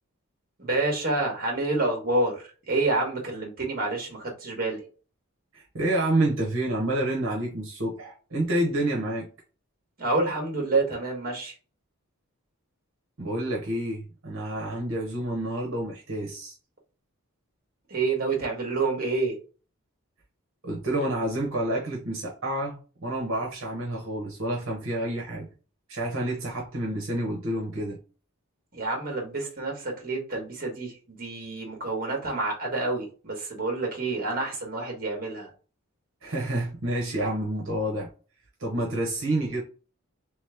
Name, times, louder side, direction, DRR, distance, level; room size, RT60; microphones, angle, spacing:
voice 1, 0.6-4.8 10.0-11.5 17.9-19.3 28.7-35.5, right 3 dB, 40° right, 1.4 m, -28 dB
voice 2, 5.5-9.3 13.2-16.5 20.6-25.5 25.9-28.0 36.2-38.1 38.6-39.6, right 1 dB, 65° right, 1.0 m, -29 dB
3.4 x 3.1 x 3.4 m
head